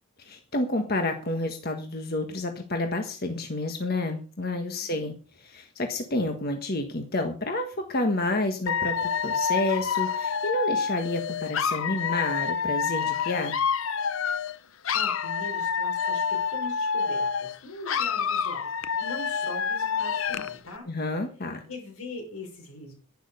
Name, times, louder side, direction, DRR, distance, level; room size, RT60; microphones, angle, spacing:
voice 1, 0.2-13.6 20.9-21.6, left 2 dB, 45° left, 5 dB, 1.5 m, -29 dB
Dog / Alarm, 8.7-14.6 14.8-17.6 17.9-20.6, left 6 dB, 70° left, 0.7 m, -28 dB
voice 2, 14.9-20.9 21.7-22.9, left 2 dB, 85° left, 2 dB, 6.2 m, -41 dB
11.5 x 10.5 x 6.7 m, 0.41 s
head